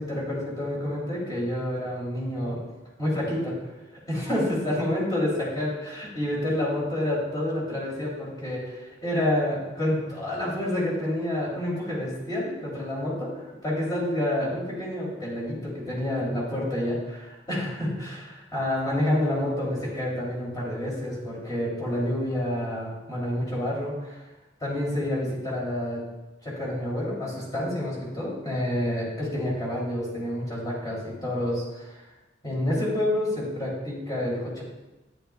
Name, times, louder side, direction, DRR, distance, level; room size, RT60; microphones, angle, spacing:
voice 1, 0.0-2.6 3.0-3.5 4.1-24.2 24.6-26.0 26.4-32.0 32.4-34.6, left 1 dB, 20° left, -6 dB, 3.4 m, -28 dB
10.0 x 10.0 x 2.4 m, 1.1 s
head